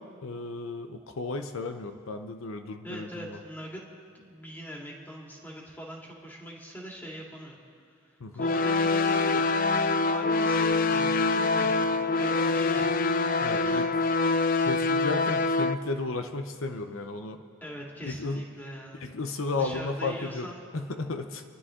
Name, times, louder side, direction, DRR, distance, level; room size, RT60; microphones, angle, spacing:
voice 1, 0.0-3.4 8.2-8.5 13.4-13.9 14.6-17.4 18.0-18.4 19.0-20.5 20.7-21.4, left 3 dB, 80° left, 7 dB, 0.7 m, -34 dB
voice 2, 2.8-3.8 4.1-7.6 8.0-9.5 10.1-13.9 17.6-19.1 19.6-20.7, equal, 10° left, -2 dB, 2.2 m, -42 dB
sound 1, 8.4-15.7, left 3 dB, 45° left, 0.5 m, -25 dB
28.5 x 11.0 x 3.7 m, 2.2 s
head